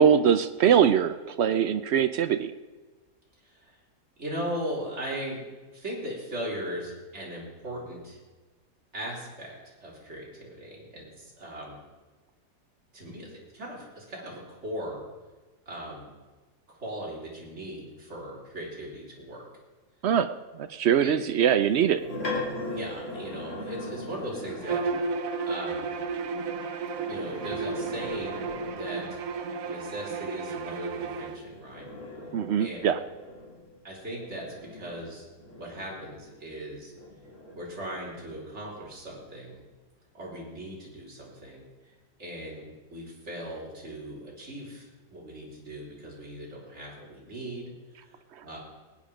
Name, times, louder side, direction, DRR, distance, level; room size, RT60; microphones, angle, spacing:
voice 1, 0.0-2.5 20.0-20.3 20.6-22.0 32.3-33.0, right 8 dB, 80° right, 11 dB, 0.6 m, -22 dB
voice 2, 3.4-3.8 4.2-5.4 5.7-8.2 8.9-9.5 9.8-11.8 12.9-15.0 15.7-16.1 16.7-19.4 21.0-21.1 22.7-24.8 25.4-25.9 27.1-29.2 29.6-31.9 32.6-32.8 33.8-35.2 35.6-36.9 37.6-39.6 40.1-41.6 42.2-48.6, right 1 dB, 40° right, -4 dB, 3.9 m, -38 dB
sound 1, 21.6-24.9 26.9-29.2 31.2-36.4 36.9-38.7, left 2 dB, 45° left, 3.0 m, -40 dB
Bowed string instrument, 24.6-31.4, right 4 dB, 60° right, 1.2 m, -33 dB
19.0 x 9.2 x 5.1 m, 1.3 s
omnidirectional pair, 1.8 m